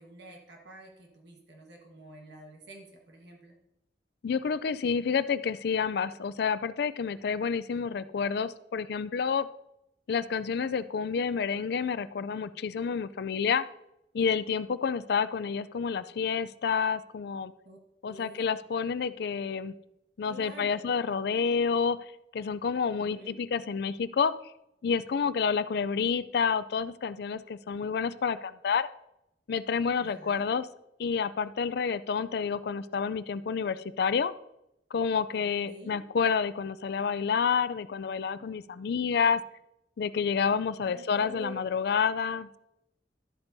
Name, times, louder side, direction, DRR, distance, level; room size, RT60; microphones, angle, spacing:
voice 1, 0.0-3.6 17.6-17.8 18.1-18.4 20.2-20.8 22.9-23.4 30.0-30.5 35.3-36.0 40.8-41.6, right 1 dB, 70° right, 1 dB, 1.4 m, -48 dB
voice 2, 4.2-9.5 10.1-13.6 14.1-17.5 18.0-19.7 20.2-22.0 22.3-24.3 24.8-28.9 29.5-30.7 31.0-34.3 34.9-39.4 40.0-42.6, left 6 dB, 65° left, 15 dB, 0.4 m, -29 dB
12.5 x 8.0 x 2.7 m, 0.84 s
head